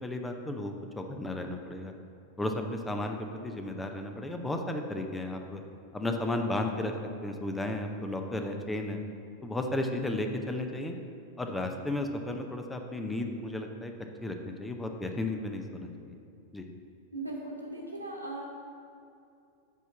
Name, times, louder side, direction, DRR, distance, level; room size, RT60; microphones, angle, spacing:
voice 1, 0.0-1.9 2.4-3.2 3.4-5.6 5.9-6.9 7.2-9.0 9.4-11.0 11.4-13.9 14.2-16.2 16.5-16.7, left 1 dB, 10° left, 4 dB, 0.6 m, -34 dB
voice 2, 17.1-18.4, right 2 dB, 90° right, -4 dB, 1.6 m, -38 dB
8.1 x 4.4 x 5.9 m, 2.5 s
figure-of-eight pair, 90°, 0 cm